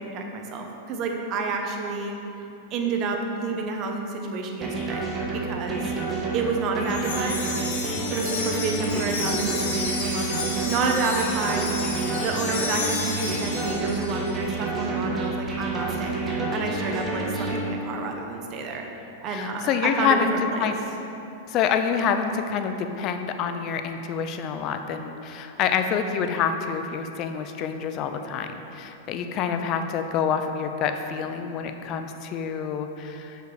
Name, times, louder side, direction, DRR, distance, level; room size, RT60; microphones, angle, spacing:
voice 1, 0.0-2.2 2.7-5.1 5.3-5.9 6.3-7.5 8.1-10.4 10.7-11.8 12.2-18.9 19.2-20.7, right 3 dB, 40° right, 2 dB, 0.9 m, -29 dB
sound 1, 4.6-17.6, right 3 dB, 20° right, 1.5 m, -29 dB
Wind chime, 6.9-14.4, left 3 dB, 75° left, 1.3 m, -32 dB
voice 2, 19.3-20.3 20.6-20.7 21.5-33.5, left 7 dB, 45° left, 7 dB, 0.5 m, -27 dB
6.4 x 5.1 x 4.8 m, 3.0 s
hypercardioid pair, 110°, 0 cm